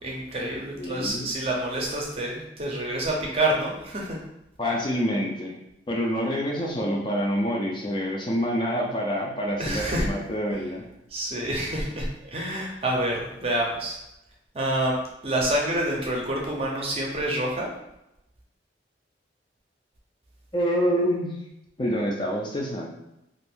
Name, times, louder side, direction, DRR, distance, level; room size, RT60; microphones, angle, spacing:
voice 1, 0.0-4.2 9.6-10.1 11.1-14.0 14.5-17.7, right 1 dB, 30° right, -2 dB, 0.6 m, -27 dB
voice 2, 0.7-1.4 4.6-5.6 5.9-10.8 20.5-21.4 21.8-22.9, equal, 25° left, -2 dB, 0.4 m, -27 dB
2.5 x 2.5 x 3.5 m, 0.89 s
head